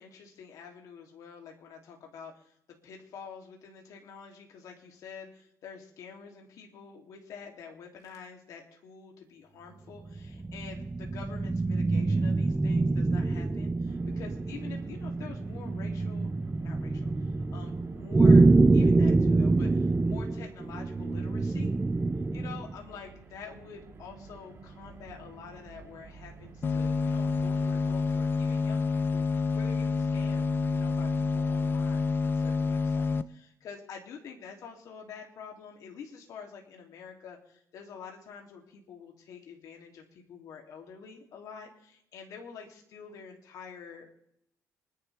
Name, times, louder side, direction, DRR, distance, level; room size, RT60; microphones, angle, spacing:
voice 1, 0.0-16.3 16.6-18.5 18.7-21.7 22.3-29.2 29.5-44.3, left 6 dB, 70° left, 1 dB, 2.9 m, -47 dB
sound 1, 10.1-22.7, right 3 dB, 20° right, 0.6 m, -25 dB
Car, 13.9-29.0, right 4 dB, 40° right, 3.3 m, -50 dB
sound 2, 26.6-33.2, left 4 dB, 35° left, 0.7 m, -28 dB
26.0 x 11.0 x 3.5 m, 0.77 s
cardioid pair, 100°, 6 cm